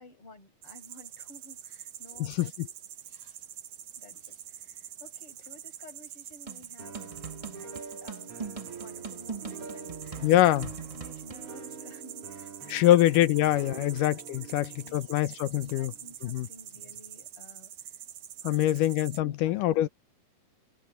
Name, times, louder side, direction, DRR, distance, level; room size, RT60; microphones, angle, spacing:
voice 1, 0.0-2.5 3.1-3.4 4.0-13.3 13.7-13.8 14.4-18.0 18.4-18.9 19.2-19.9, left 1 dB, 40° left, 6.8 m, -53 dB
sound 1, 0.6-19.2, right 10 dB, 60° right, 1.9 m, -46 dB
sound 2, 6.5-11.4, right 5 dB, 25° right, 0.7 m, -41 dB
sound 3, 6.8-16.7, right 5 dB, 40° right, 4.7 m, -46 dB
voice 2, 10.2-10.7 12.7-15.9 16.2-16.5 18.4-19.9, left 14 dB, 75° left, 2.3 m, -24 dB
omnidirectional pair, 4.0 m